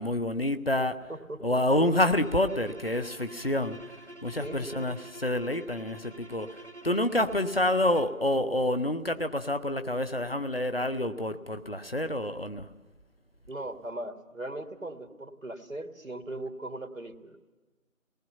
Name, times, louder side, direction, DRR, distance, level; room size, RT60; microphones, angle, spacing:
voice 1, 0.0-1.1 1.4-3.8 4.2-5.0 5.2-12.7, left 1 dB, 45° left, 10 dB, 0.9 m, -28 dB
voice 2, 1.1-1.4 4.4-4.8 13.5-17.4, right 1 dB, 70° right, 5 dB, 2.2 m, -39 dB
sound 1, 1.9-8.2, right 1 dB, 55° right, 1.3 m, -46 dB
27.0 x 19.5 x 5.7 m, 1.2 s
figure-of-eight pair, 175°, 42 cm